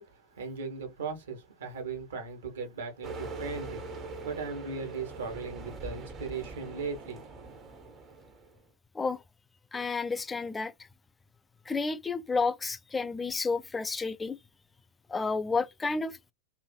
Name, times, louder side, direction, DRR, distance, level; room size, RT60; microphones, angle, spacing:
voice 1, 0.0-7.4, right 4 dB, 65° right, 1.1 m, -38 dB
sound 1, 3.0-8.6, right 3 dB, 25° right, 0.7 m, -42 dB
voice 2, 9.7-10.7 11.7-14.4 15.1-16.2, left 4 dB, 15° left, 0.3 m, -31 dB
3.1 x 2.5 x 2.3 m
figure-of-eight pair, 90°, 0 cm